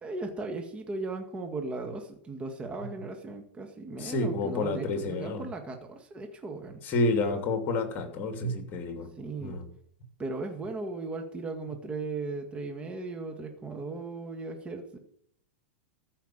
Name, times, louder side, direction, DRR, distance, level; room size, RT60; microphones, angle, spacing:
voice 1, 0.0-6.8 9.2-9.6 10.2-15.0, right 3 dB, 20° right, 5 dB, 1.9 m, -37 dB
voice 2, 4.0-5.5 6.8-9.1 9.4-9.6, left 2 dB, 35° left, 6 dB, 3.1 m, -29 dB
14.5 x 5.8 x 8.6 m, 0.67 s
hypercardioid pair, 120°, 6 cm